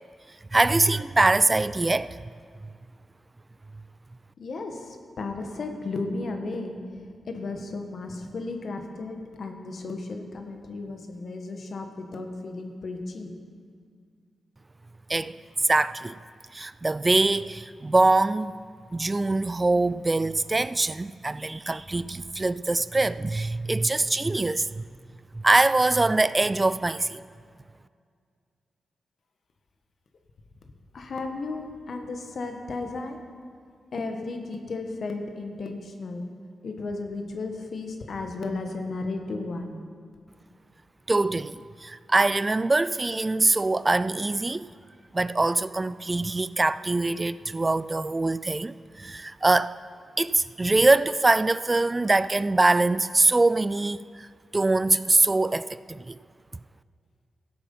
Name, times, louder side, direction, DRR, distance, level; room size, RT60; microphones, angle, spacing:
voice 1, 0.5-2.2 15.1-16.2 16.5-18.6 18.9-24.8 25.3-27.2 41.1-44.7 45.1-49.8 50.2-54.3 54.5-56.2, right 2 dB, 30° right, 0.3 m, -23 dB
voice 2, 4.4-6.7 7.3-13.3 30.9-33.2 33.9-36.3 36.6-39.8, left 3 dB, 65° left, 1.5 m, -34 dB
15.0 x 8.6 x 5.5 m
supercardioid pair, 40°, 0 cm